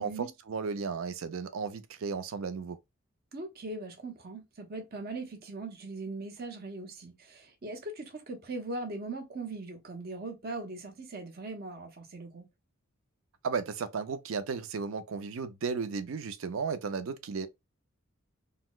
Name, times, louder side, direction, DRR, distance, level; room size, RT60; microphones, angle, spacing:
voice 1, 0.5-2.8 13.4-17.5, right 5 dB, 70° right, 0.4 m, -34 dB
voice 2, 3.3-12.5, right 2 dB, 45° right, 0.7 m, -40 dB
4.0 x 2.0 x 2.3 m
head